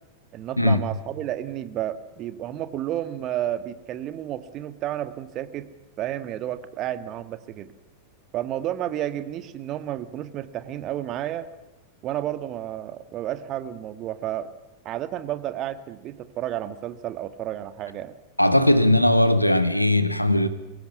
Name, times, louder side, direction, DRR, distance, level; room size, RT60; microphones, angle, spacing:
voice 1, 0.3-5.7 6.0-7.7 8.3-11.5 12.0-14.5 14.8-18.1, right 12 dB, 35° right, 1.5 m, -31 dB
voice 2, 18.4-20.5, left 1 dB, 90° left, 1.5 m, -19 dB
23.0 x 17.5 x 8.2 m
figure-of-eight pair, 90°, 0 cm